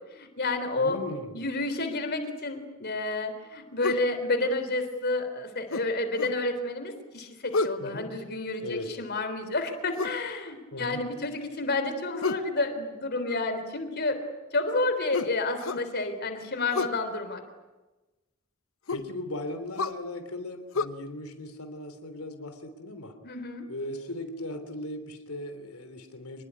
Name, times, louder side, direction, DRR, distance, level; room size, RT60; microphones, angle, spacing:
voice 1, 0.1-14.2 14.5-17.4 23.2-23.7, left 2 dB, 50° left, 8 dB, 3.7 m, -30 dB
voice 2, 0.8-1.3 7.8-8.1 8.6-8.9 10.7-11.1 18.9-23.2 23.7-26.4, left 1 dB, 85° left, 8 dB, 3.2 m, -38 dB
sound 1, 3.8-4.1 5.7-6.4 7.5-7.8 9.9-10.2 12.2-12.5 15.1-15.9 16.7-17.0 18.9-19.1 19.8-20.0 20.7-20.9, left 4 dB, 65° left, 1.1 m, -30 dB
27.0 x 20.5 x 10.0 m, 1.1 s
head